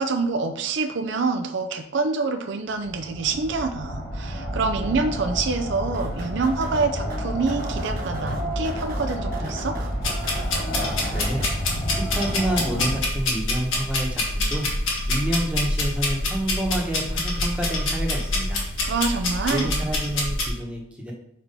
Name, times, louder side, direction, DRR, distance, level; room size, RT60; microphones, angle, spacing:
voice 1, 0.0-9.8 18.8-19.7, right 4 dB, 65° right, 6 dB, 0.5 m, -26 dB
sound 1, 2.7-13.0, equal, 55° left, 1.1 m, -30 dB
sound 2, 5.9-11.8, right 1 dB, 45° right, 1.0 m, -38 dB
sound 3, 10.0-20.5, left 2 dB, 80° left, 1.7 m, -26 dB
voice 2, 11.1-11.5 11.9-14.7 15.1-18.6 19.5-21.1, right 1 dB, 5° right, -1 dB, 1.0 m, -28 dB
4.5 x 4.1 x 5.2 m, 0.75 s
head